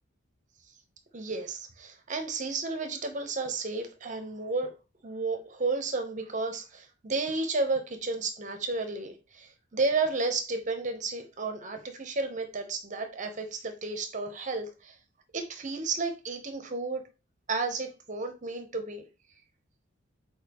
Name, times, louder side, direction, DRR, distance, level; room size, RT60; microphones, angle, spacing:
voice 1, 1.1-4.7 5.0-15.0 15.3-17.0 17.5-19.1, right 3 dB, 35° right, 0.7 m, -32 dB
4.4 x 4.0 x 2.9 m
head